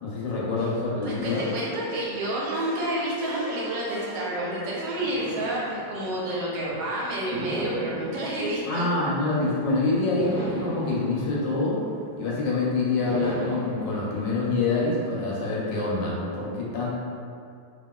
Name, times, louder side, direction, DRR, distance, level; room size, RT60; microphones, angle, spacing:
voice 1, 0.0-1.4 8.6-11.8 12.2-16.9, left 3 dB, 75° left, -5 dB, 1.2 m, -26 dB
voice 2, 1.0-8.8, right 1 dB, 75° right, -6 dB, 1.1 m, -29 dB
brass loop, 1.2-6.5, left 1 dB, 5° left, 0.8 m, -42 dB
sound 1, 5.0-6.7 7.3-9.6 10.2-12.4 13.0-15.3, right 1 dB, 55° right, 0.6 m, -37 dB
2.9 x 2.4 x 2.2 m, 2.4 s
omnidirectional pair, 2.1 m